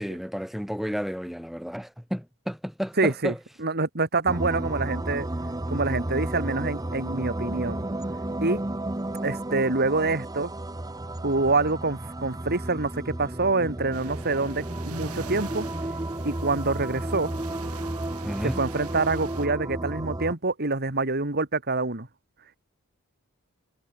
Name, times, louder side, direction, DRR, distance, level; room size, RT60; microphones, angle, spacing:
voice 1, 0.0-3.4 18.2-18.6, equal, ahead, 2.3 m, -32 dB
voice 2, 3.0-3.3 3.6-5.3 5.7-7.9 8.4-8.6 9.2-10.5 11.2-15.7 16.2-17.3 18.6-22.1, right 3 dB, 45° right, 2.5 m, -26 dB
sound 1, 4.3-20.3, right 1 dB, 15° right, 0.8 m, -32 dB
sound 2, 13.9-19.5, right 5 dB, 80° right, 6.5 m, -45 dB
head